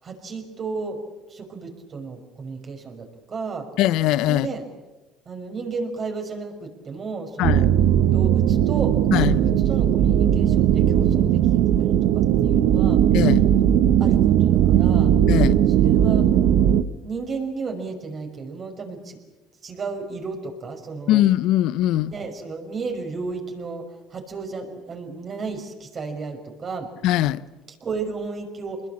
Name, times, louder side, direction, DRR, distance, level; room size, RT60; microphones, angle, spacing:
voice 1, 0.0-1.0 1.3-3.7 4.3-4.6 5.3-7.7 8.0-13.0 14.0-15.1 15.8-16.3 17.0-19.2 19.6-21.2 22.1-26.9 27.8-28.8, right 4 dB, 40° right, 5.8 m, -33 dB
voice 2, 3.8-4.5 7.4-7.6 9.1-9.4 13.1-13.4 15.3-15.6 21.1-22.1 27.0-27.4, left 13 dB, 75° left, 0.8 m, -20 dB
sound 1, 7.4-16.8, right 10 dB, 75° right, 1.1 m, -18 dB
25.5 x 21.0 x 8.7 m
supercardioid pair, 90°, 0 cm